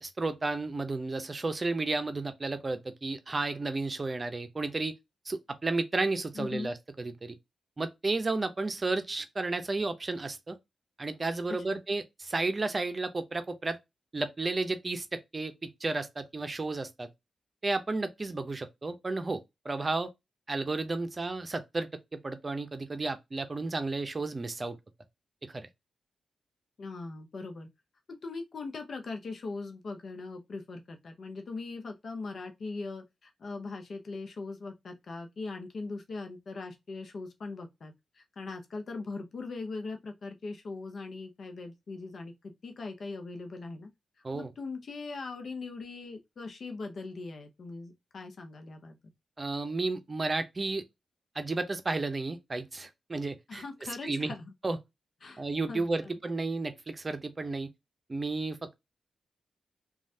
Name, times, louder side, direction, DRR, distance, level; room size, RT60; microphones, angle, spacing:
voice 1, 0.0-4.9 5.3-7.4 7.8-10.6 11.0-13.8 14.1-17.1 17.6-20.1 20.5-24.8 25.4-25.7 44.2-44.5 49.4-50.8 51.3-53.6 54.0-54.3 54.6-54.8 55.4-57.7 58.1-58.8, right 3 dB, 40° right, 0.6 m, -32 dB
voice 2, 6.3-6.7 11.7-11.8 26.8-27.7 28.1-43.9 44.3-49.0 53.5-54.5 55.2-56.2, left 3 dB, 65° left, 0.7 m, -40 dB
3.1 x 2.4 x 2.7 m
supercardioid pair, 45°, 0 cm